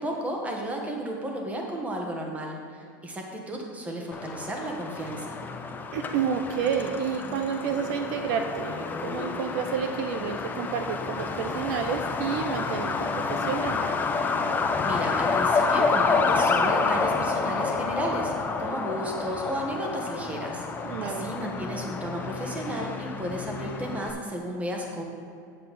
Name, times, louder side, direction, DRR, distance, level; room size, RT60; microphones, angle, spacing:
voice 1, 0.0-5.4 14.8-25.0, right 1 dB, 15° right, 1 dB, 1.3 m, -33 dB
Truck, 4.1-24.1, left 4 dB, 20° left, 0.6 m, -29 dB
voice 2, 5.9-13.8 20.8-21.3, right 7 dB, 60° right, 6 dB, 0.6 m, -30 dB
8.3 x 7.6 x 4.1 m, 2.4 s
supercardioid pair, 130°, 10 cm